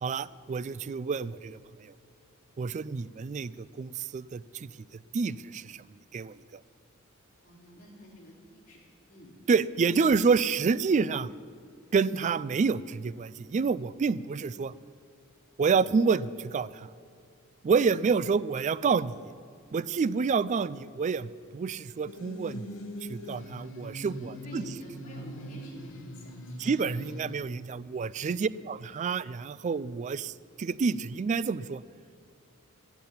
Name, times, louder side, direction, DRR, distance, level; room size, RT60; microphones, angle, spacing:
voice 1, 0.0-1.9 2.6-4.7 5.1-5.8 6.1-6.3 9.5-11.3 11.9-14.7 15.6-16.9 17.6-19.1 19.7-22.7 23.1-24.7 26.6-31.8, right 5 dB, 35° right, 18 dB, 0.3 m, -28 dB
voice 2, 7.4-8.8 9.1-9.3 24.2-26.8 28.4-28.7, equal, 40° left, -5 dB, 3.8 m, -48 dB
sound 1, 22.1-27.4, equal, 65° left, 1.0 m, -42 dB
15.0 x 6.1 x 8.6 m, 2.4 s
head